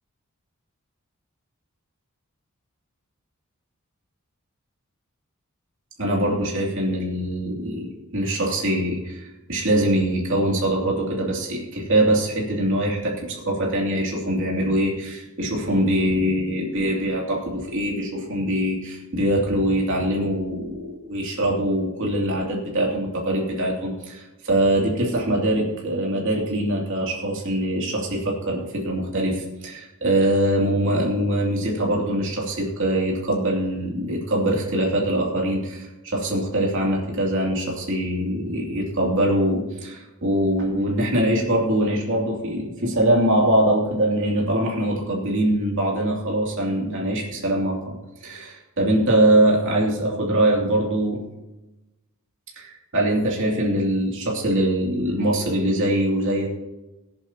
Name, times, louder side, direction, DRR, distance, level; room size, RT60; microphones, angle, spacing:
voice 1, 6.0-48.0 48.2-51.2 52.6-56.5, right 1 dB, 60° right, -3 dB, 2.8 m, -23 dB
22.5 x 8.0 x 2.9 m, 1.0 s
head